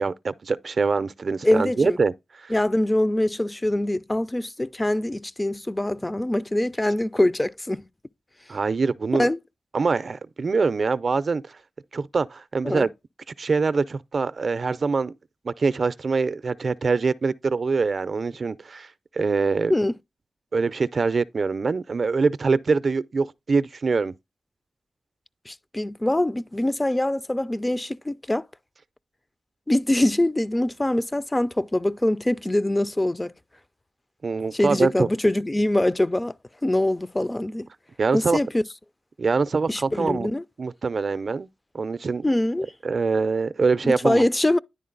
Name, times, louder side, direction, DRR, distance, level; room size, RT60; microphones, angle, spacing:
voice 1, 0.0-2.1 2.4-2.5 8.5-9.3 9.7-11.6 11.9-12.9 13.4-15.1 15.4-18.9 19.1-19.7 20.5-24.1 34.2-35.1 38.0-38.4 39.2-40.3 40.6-41.5 41.7-42.3 42.8-44.3, right 4 dB, 60° right, 0.4 m, -24 dB
voice 2, 1.4-2.0 2.5-7.9 9.2-9.4 12.6-12.9 19.7-19.9 25.5-28.5 29.7-33.3 34.5-36.3 36.6-37.7 38.1-38.6 39.7-40.4 42.2-42.7 43.8-44.6, left 1 dB, 20° left, 0.4 m, -23 dB
10.0 x 3.9 x 3.8 m
cardioid pair, 50°, 0 cm